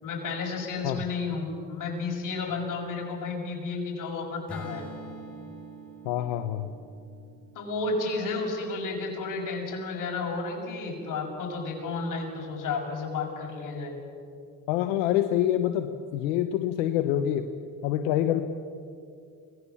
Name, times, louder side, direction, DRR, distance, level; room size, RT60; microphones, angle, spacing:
voice 1, 0.0-4.8 7.5-13.9, left 3 dB, 55° left, 0 dB, 6.6 m, -32 dB
Acoustic guitar / Strum, 4.5-8.7, right 1 dB, 5° left, 5.6 m, -44 dB
voice 2, 6.0-6.7 14.7-17.5 17.8-18.4, left 11 dB, 90° left, 8 dB, 1.0 m, -26 dB
24.0 x 19.0 x 7.1 m, 2.4 s
supercardioid pair, 75°, 37 cm